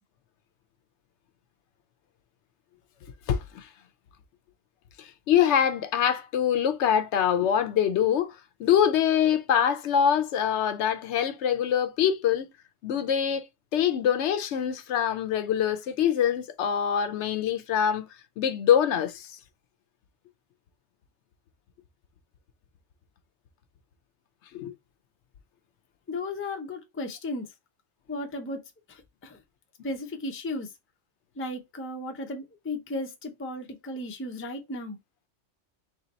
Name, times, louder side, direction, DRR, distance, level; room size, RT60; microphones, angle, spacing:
voice 1, 3.3-3.7 5.0-12.5 12.8-13.5 13.7-18.1 18.4-19.4 24.5-24.7, left 9 dB, 75° left, 0.8 m, -24 dB
voice 2, 26.1-27.5 28.1-28.6 28.9-29.4 29.8-30.7 31.4-35.0, left 2 dB, 15° left, 0.4 m, -35 dB
3.3 x 2.8 x 3.9 m
omnidirectional pair, 1.2 m